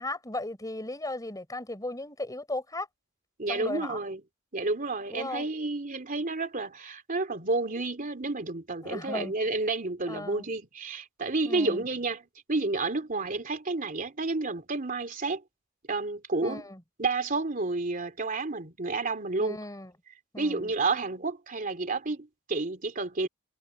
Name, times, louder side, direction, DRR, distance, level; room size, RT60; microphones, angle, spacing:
voice 1, 0.0-2.9 3.5-4.0 5.1-5.4 8.8-9.3 10.1-10.5 11.4-11.8 16.4-16.8 19.4-19.9 20.3-20.7, left 2 dB, 15° left, 5.6 m, -36 dB
voice 2, 3.4-4.2 4.5-15.4 15.9-16.6 17.0-19.6 20.4-23.3, right 3 dB, 40° right, 3.0 m, -30 dB
head